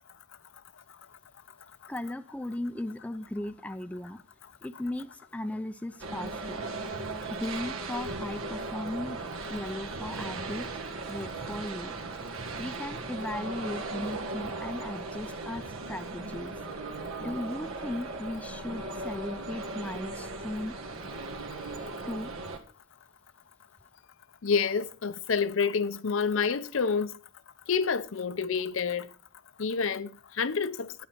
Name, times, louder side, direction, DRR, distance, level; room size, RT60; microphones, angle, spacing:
voice 1, 1.9-4.2 4.6-6.6 7.3-9.2 9.5-10.7 11.1-11.9 12.6-16.5 17.2-20.8 22.1-22.3, left 1 dB, 5° left, 0.4 m, -37 dB
sound 1, 6.0-22.6, right 3 dB, 80° right, 1.7 m, -37 dB
voice 2, 24.4-27.1 27.7-29.1 29.6-31.1, left 5 dB, 70° left, 0.6 m, -28 dB
10.0 x 9.3 x 4.4 m
head